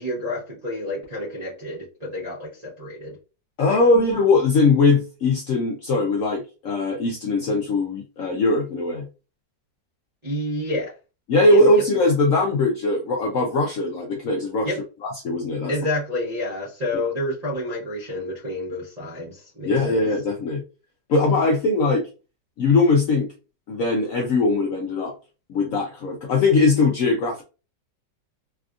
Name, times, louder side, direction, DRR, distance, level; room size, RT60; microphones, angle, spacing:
voice 1, 0.0-3.2 3.7-3.8 10.2-10.9 11.5-11.6 14.6-14.8 15.7-20.0, left 1 dB, 35° right, -9 dB, 0.7 m, -29 dB
voice 2, 3.6-9.0 11.3-14.7 15.0-15.7 19.7-20.6 21.1-22.1 22.6-23.3 23.7-25.1 25.5-27.4, left 3 dB, 70° left, 0 dB, 0.8 m, -20 dB
3.4 x 2.4 x 2.3 m, 0.33 s
omnidirectional pair, 1.9 m